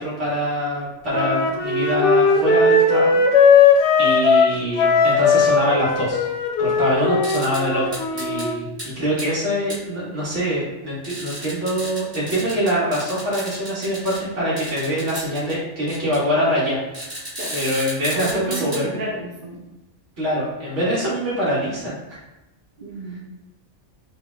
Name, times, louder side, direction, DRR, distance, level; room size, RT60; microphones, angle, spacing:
voice 1, 0.0-3.2 4.0-6.3 6.6-17.3 17.5-19.0 20.2-22.2, equal, 70° right, -7 dB, 1.8 m, -24 dB
Wind instrument woodwind instrument, 1.1-8.5, left 4 dB, 70° left, 0.8 m, -17 dB
sound 1, 7.2-7.6 7.9-8.5 8.8-8.9 9.2-9.3 9.7-9.8 11.0-14.2 14.6-15.5 15.9-16.2 16.9-18.8, right 1 dB, 30° right, 1.6 m, -33 dB
voice 2, 18.1-19.6 22.8-23.2, right 1 dB, 50° right, -3 dB, 0.8 m, -31 dB
4.9 x 2.9 x 2.3 m, 1.0 s
omnidirectional pair, 1.3 m